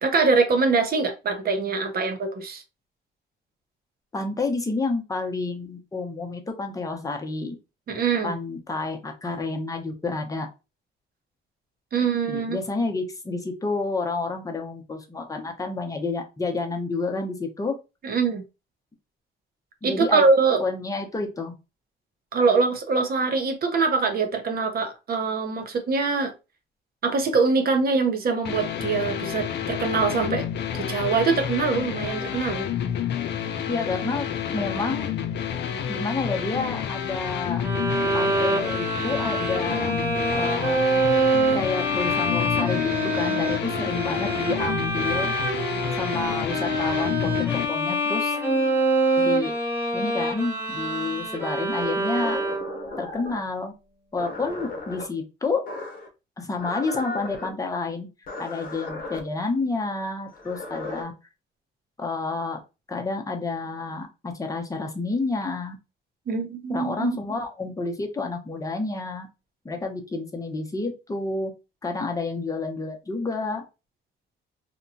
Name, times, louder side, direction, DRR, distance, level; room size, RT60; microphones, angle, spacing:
voice 1, 0.0-2.6 7.9-8.4 11.9-12.6 18.0-18.4 19.8-20.6 22.3-26.3 27.0-30.5 30.7-32.7 66.3-67.2, right 4 dB, 50° right, 0.6 m, -23 dB
voice 2, 4.1-7.6 8.2-10.5 12.3-17.8 19.8-20.2 20.6-21.5 33.7-35.1 35.7-37.6 38.1-39.9 40.3-40.8 41.5-45.3 46.0-47.3 47.7-48.4 49.2-49.5 49.9-52.4 53.0-53.7 54.1-55.6 56.4-58.1 58.4-61.1 62.0-62.6 62.9-65.8 66.7-69.3 69.6-71.5 71.8-73.6, left 3 dB, 15° left, 0.7 m, -29 dB
sound 1, 28.4-47.7, left 9 dB, 60° left, 0.5 m, -29 dB
Bowed string instrument, 37.6-52.9, right 1 dB, 10° right, 1.0 m, -25 dB
sound 2, 51.8-53.5 54.2-55.0 55.7-56.1 56.6-57.5 58.3-59.2 60.3-61.0, left 2 dB, 45° left, 0.9 m, -36 dB
2.8 x 2.2 x 2.5 m
cardioid pair, 90°, 20 cm